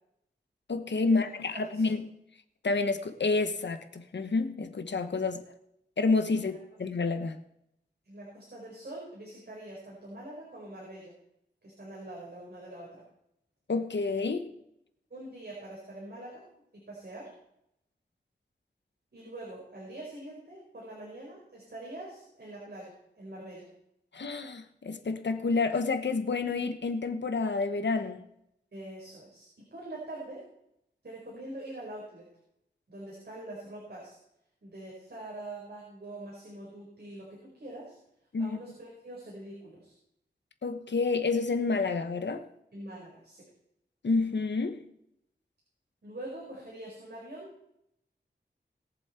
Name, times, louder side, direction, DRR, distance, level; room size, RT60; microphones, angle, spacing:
voice 1, 0.7-2.1 2.6-5.4 6.0-6.5 6.8-7.4 13.7-14.4 24.1-28.2 38.3-38.6 40.6-42.4 44.0-44.8, left 3 dB, 80° left, 1.1 m, -29 dB
voice 2, 1.5-1.9 6.3-6.5 8.0-11.1 11.6-13.0 14.3-14.4 15.1-16.4 16.9-17.3 19.1-23.7 28.7-30.5 31.0-32.3 32.9-34.2 34.6-38.0 38.4-39.9 42.7-43.5 46.0-47.5, right 1 dB, 65° right, 4.6 m, -44 dB
21.5 x 7.3 x 4.4 m
wide cardioid pair, 90°, 18 cm